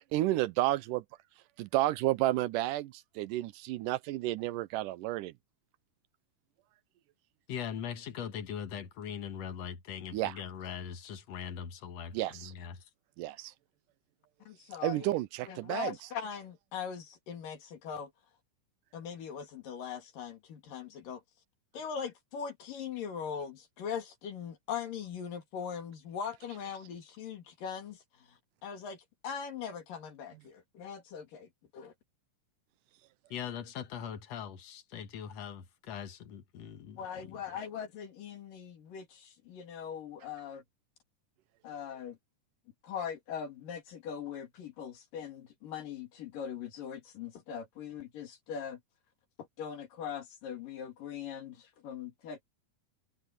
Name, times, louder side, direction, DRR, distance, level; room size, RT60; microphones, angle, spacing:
voice 1, 0.1-1.0 1.6-5.3 10.1-10.3 12.1-12.5 13.2-13.5 14.8-16.0, right 16 dB, 90° right, 2.2 m, -31 dB
voice 2, 7.5-12.9 33.3-37.4, left 8 dB, 60° left, 2.3 m, -41 dB
voice 3, 14.5-15.1 15.4-18.1 18.9-21.2 21.7-31.9 37.0-40.6 41.6-42.2 42.8-48.8 49.4-52.4, left 7 dB, 85° left, 4.2 m, -41 dB
omnidirectional pair, 3.8 m